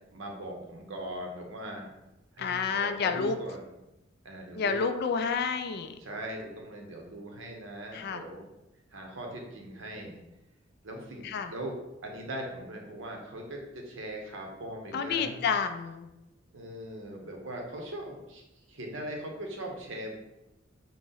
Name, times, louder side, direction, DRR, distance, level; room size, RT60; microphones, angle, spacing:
voice 1, 0.1-1.9 2.4-3.6 4.2-4.8 6.0-8.5 8.9-10.2 10.8-15.4 16.5-18.4 18.7-20.1, right 1 dB, 80° right, 1 dB, 0.7 m, -40 dB
voice 2, 2.4-3.4 4.6-6.0 7.9-8.2 11.2-11.5 14.9-16.1, left 5 dB, 55° left, 8 dB, 0.3 m, -29 dB
3.8 x 2.0 x 3.8 m, 0.94 s
head